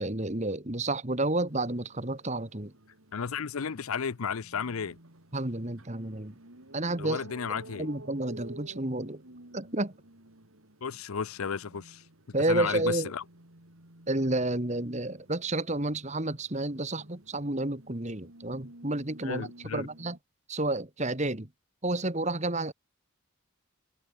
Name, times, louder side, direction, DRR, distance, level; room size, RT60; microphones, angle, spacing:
voice 1, 0.0-2.7 5.3-6.3 6.7-7.2 7.8-9.2 9.5-9.9 12.3-13.1 14.1-20.2 20.5-21.5 21.8-22.7, right 2 dB, 35° right, 2.0 m, -30 dB
sound 1, 1.5-20.2, right 1 dB, 75° right, 4.0 m, -52 dB
voice 2, 3.1-5.0 7.0-7.9 10.8-12.0 12.5-13.2 19.2-19.9, left 6 dB, 85° left, 0.7 m, -33 dB
head